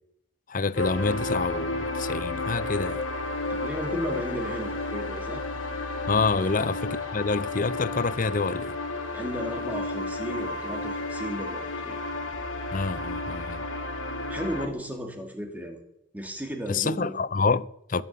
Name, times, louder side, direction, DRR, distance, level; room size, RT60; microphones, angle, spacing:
voice 1, 0.5-3.0 6.1-8.7 12.7-13.6 16.7-18.0, left 4 dB, 40° left, 0.6 m, -27 dB
sound 1, 0.8-14.7, left 2 dB, 80° left, 2.7 m, -32 dB
voice 2, 3.5-5.4 6.4-6.5 9.1-12.0 14.3-15.8 16.1-17.1 17.9-18.0, equal, 10° right, 2.5 m, -34 dB
21.0 x 7.5 x 9.2 m
head